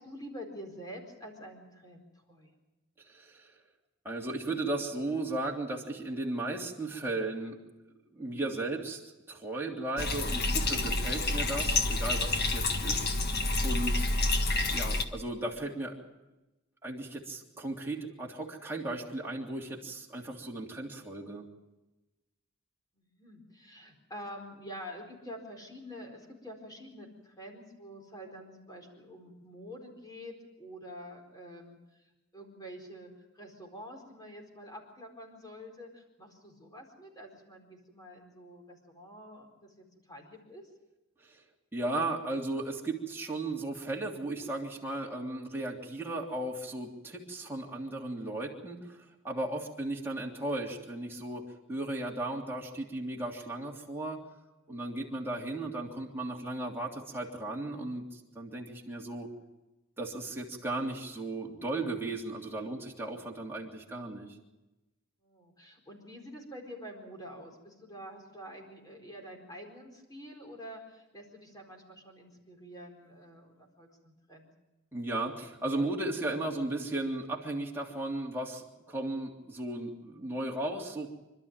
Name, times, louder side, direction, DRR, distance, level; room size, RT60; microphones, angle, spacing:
voice 1, 0.0-2.5 22.9-40.7 54.7-54.9 65.2-74.5, equal, 20° left, 2 dB, 4.5 m, -47 dB
voice 2, 3.1-3.5 4.0-7.6 8.1-9.0 9.3-13.1 13.6-14.1 14.7-15.9 16.8-21.4 41.3-41.4 41.7-49.0 49.2-51.4 51.7-54.2 54.7-59.3 60.0-64.3 74.9-81.1, right 2 dB, 10° right, -3 dB, 3.1 m, -35 dB
Bathtub (filling or washing), 10.0-15.0, left 2 dB, 50° left, 1.6 m, -29 dB
26.5 x 12.5 x 8.9 m, 1.0 s
head